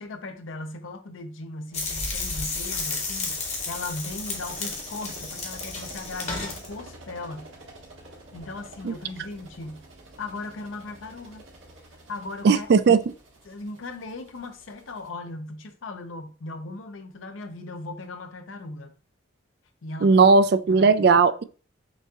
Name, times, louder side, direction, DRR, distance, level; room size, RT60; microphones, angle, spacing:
voice 1, 0.0-7.5 8.3-9.8 10.2-11.4 11.9-12.7 13.4-18.9 19.8-20.3 20.7-21.3, left 2 dB, 85° left, 0.6 m, -38 dB
sound 1, 1.7-6.7, left 3 dB, 35° left, 1.0 m, -32 dB
sound 2, 1.7-15.1, right 2 dB, 75° right, 1.4 m, -48 dB
voice 2, 12.4-13.0 20.0-21.4, right 4 dB, 55° right, 0.3 m, -17 dB
6.1 x 2.8 x 2.3 m
head